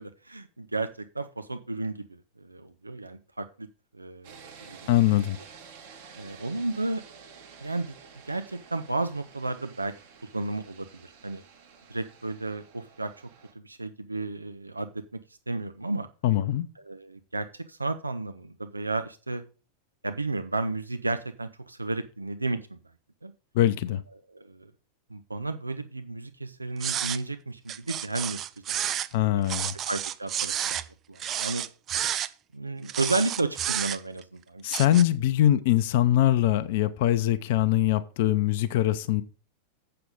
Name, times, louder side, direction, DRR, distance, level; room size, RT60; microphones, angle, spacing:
voice 1, 0.0-3.7 3.9-4.9 6.2-7.0 7.6-8.0 8.2-9.9 10.3-11.4 11.9-13.3 13.5-15.0 15.5-16.1 16.8-19.4 20.0-22.8 23.2-23.3 24.3-24.7 25.1-28.4 28.7-28.9 29.3-29.6 29.9-31.6 32.5-34.6, right 2 dB, 80° right, 0.6 m, -33 dB
sound 1, 4.2-13.5, right 6 dB, 55° right, 2.8 m, -50 dB
voice 2, 4.9-5.4 16.2-16.7 23.5-24.0 29.1-29.7 34.6-39.2, left 13 dB, 50° left, 0.7 m, -23 dB
sound 2, 26.8-27.2 27.7-29.1 29.5-30.9 31.2-32.3 32.9-34.2 34.7-35.0, right 10 dB, 30° right, 0.5 m, -30 dB
7.9 x 6.7 x 5.2 m
figure-of-eight pair, 90°, 0 cm